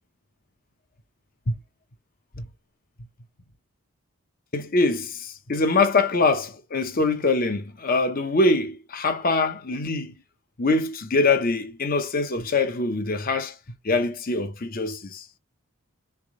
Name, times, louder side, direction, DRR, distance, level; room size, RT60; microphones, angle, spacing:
voice 1, 4.5-10.1 10.6-13.5 13.8-15.2, left 3 dB, 40° left, 0.7 m, -23 dB
3.5 x 3.4 x 3.7 m
head